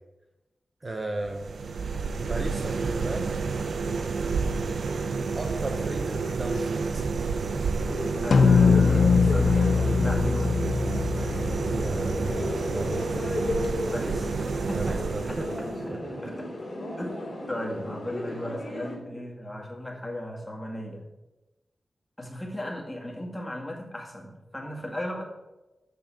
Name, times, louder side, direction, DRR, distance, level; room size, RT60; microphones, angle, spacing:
voice 1, 0.8-1.5 2.2-3.4 5.4-7.1 11.8-13.2 14.7-15.5 15.8-16.4, right 2 dB, 30° right, 3 dB, 0.8 m, -34 dB
sound 1, 1.2-15.9, right 4 dB, 80° right, 0.5 m, -30 dB
sound 2, 7.9-19.0, left 2 dB, 45° left, 2.6 m, -35 dB
voice 2, 8.2-10.6 13.9-15.0 15.3-15.7 16.2-16.5 17.0-21.0 22.2-25.2, equal, 10° left, -1 dB, 2.0 m, -36 dB
sound 3, 8.3-12.9, left 5 dB, 75° left, 0.4 m, -22 dB
8.5 x 6.4 x 4.5 m, 1.0 s
wide cardioid pair, 110°, 0 cm